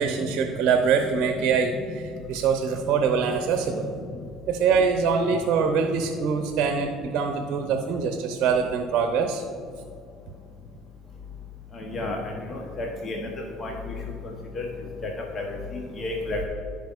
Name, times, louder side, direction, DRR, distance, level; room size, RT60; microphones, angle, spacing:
voice 1, 0.0-3.9 4.5-9.4 9.7-9.8, right 6 dB, 50° right, 5 dB, 0.7 m, -24 dB
voice 2, 11.7-13.3 13.6-13.7 14.5-14.7 15.0-16.5, left 2 dB, 35° left, 0 dB, 1.2 m, -32 dB
14.5 x 5.3 x 2.6 m, 2.3 s
figure-of-eight pair, 60°, 0 cm